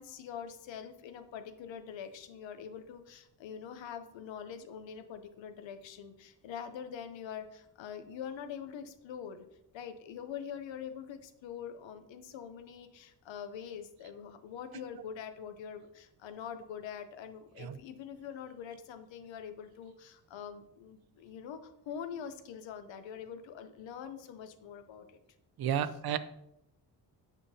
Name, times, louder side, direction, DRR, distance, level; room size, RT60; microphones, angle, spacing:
voice 1, 0.0-9.4 9.7-25.2, left 8 dB, 85° left, 9 dB, 0.7 m, -44 dB
voice 2, 25.6-26.2, right 9 dB, 60° right, 13 dB, 0.5 m, -32 dB
8.2 x 5.8 x 2.7 m, 0.81 s
wide cardioid pair, 140°, 44 cm